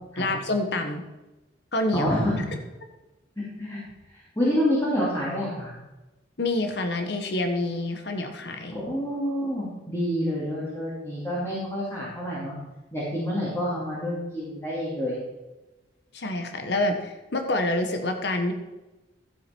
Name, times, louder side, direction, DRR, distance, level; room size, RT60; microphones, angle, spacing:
voice 1, 0.2-1.0 1.7-2.1 6.4-8.8 16.1-18.5, left 2 dB, 60° left, 6 dB, 1.2 m, -27 dB
voice 2, 1.9-2.3 3.4-3.8 4.1-5.8 8.7-12.5 12.9-15.2, equal, 15° left, -7 dB, 2.7 m, -28 dB
13.0 x 7.7 x 4.5 m, 1.1 s
head